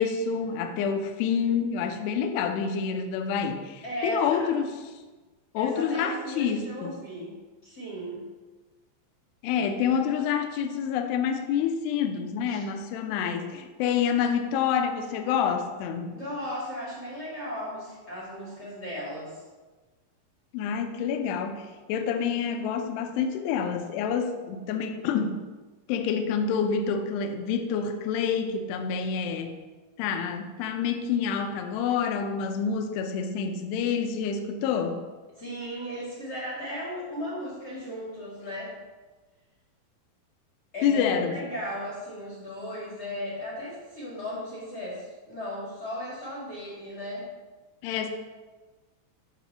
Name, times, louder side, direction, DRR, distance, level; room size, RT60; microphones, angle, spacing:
voice 1, 0.0-4.7 5.5-6.9 9.4-16.2 20.5-25.4 25.9-29.6 30.0-35.0 40.8-41.3 47.8-48.1, left 7 dB, 80° left, 6 dB, 2.6 m, -27 dB
voice 2, 3.8-4.5 5.6-7.3 7.6-8.2 12.5-12.6 16.1-19.4 35.4-38.7 40.7-47.3, equal, 35° left, -7 dB, 1.8 m, -36 dB
9.2 x 4.2 x 6.8 m, 1.3 s
omnidirectional pair, 5.4 m